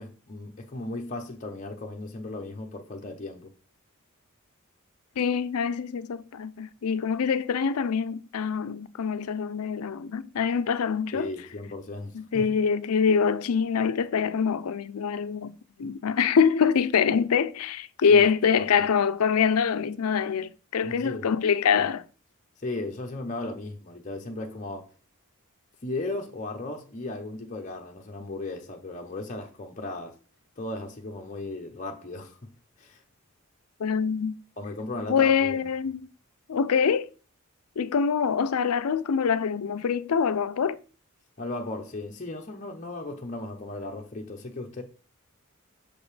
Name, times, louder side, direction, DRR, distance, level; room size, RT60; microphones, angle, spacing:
voice 1, 0.0-3.5 11.1-12.6 18.1-18.2 20.8-21.3 22.6-24.9 25.8-30.2 30.6-32.5 32.8-33.0 34.6-35.6 41.4-44.8, left 2 dB, 35° left, 0.7 m, -36 dB
voice 2, 5.2-11.3 12.1-22.0 33.8-34.4 35.1-36.0 36.5-37.1 37.8-40.8, left 6 dB, 85° left, 0.5 m, -25 dB
6.5 x 5.1 x 3.2 m
head